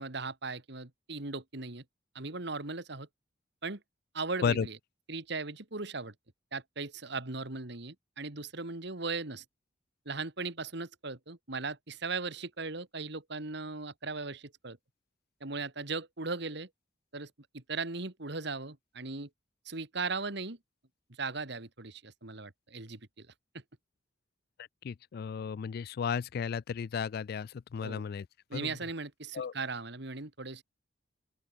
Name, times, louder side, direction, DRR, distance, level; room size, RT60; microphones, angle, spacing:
voice 1, 0.0-1.8 2.1-3.1 3.6-3.8 4.1-4.8 5.1-6.1 6.5-9.4 10.1-14.8 15.4-16.7 17.1-19.3 19.7-20.6 21.2-23.3 27.8-28.0 28.5-30.6, right 3 dB, 65° right, 2.3 m, -38 dB
voice 2, 24.8-28.3 28.5-28.7 29.3-29.5, left 6 dB, 55° left, 0.3 m, -33 dB
open air
head